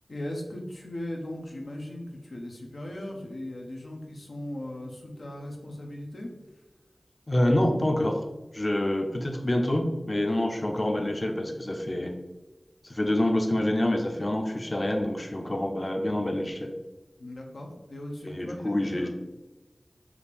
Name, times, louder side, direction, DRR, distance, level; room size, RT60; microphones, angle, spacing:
voice 1, 0.1-6.3 17.2-19.1, left 1 dB, 85° left, 0 dB, 0.7 m, -38 dB
voice 2, 7.3-8.2 8.5-12.1 12.8-16.7 18.2-19.1, left 1 dB, 35° left, 3 dB, 0.6 m, -27 dB
4.9 x 2.6 x 3.3 m, 1.1 s
wide cardioid pair, 70°, 0 cm